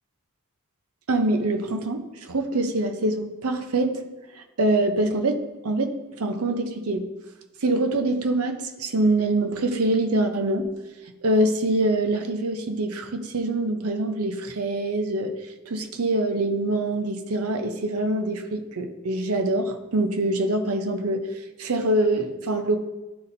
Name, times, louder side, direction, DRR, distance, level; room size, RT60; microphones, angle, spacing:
voice 1, 1.1-4.0 4.4-7.0 7.6-10.7 11.2-15.3 15.7-21.3 21.6-22.8, right 2 dB, 85° right, 6 dB, 0.7 m, -24 dB
11.5 x 4.1 x 2.6 m, 1.1 s
head